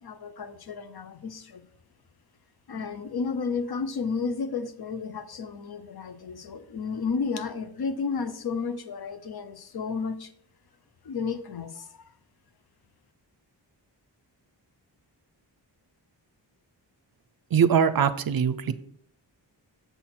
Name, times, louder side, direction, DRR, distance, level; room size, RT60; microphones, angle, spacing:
voice 1, 0.0-1.7 2.7-10.3 11.0-12.1, left 5 dB, 60° left, 11 dB, 0.7 m, -32 dB
voice 2, 17.5-18.7, right 7 dB, 55° right, 13 dB, 0.5 m, -22 dB
7.0 x 5.7 x 4.3 m, 0.64 s
wide cardioid pair, 105°, 43 cm